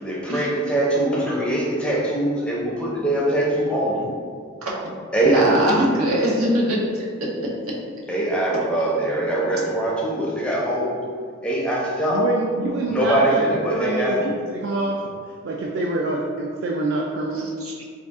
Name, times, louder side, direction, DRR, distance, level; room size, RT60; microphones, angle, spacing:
voice 1, 0.0-4.1 5.1-5.6 8.1-10.9 11.4-12.2 12.9-14.2, right 1 dB, 5° left, -5 dB, 0.5 m, -22 dB
voice 2, 5.2-6.8 7.2-7.3 17.6-17.8, equal, 90° right, -4 dB, 0.8 m, -21 dB
voice 3, 12.1-17.5, right 2 dB, 55° right, -1 dB, 0.3 m, -26 dB
3.6 x 2.4 x 3.5 m, 2.1 s
head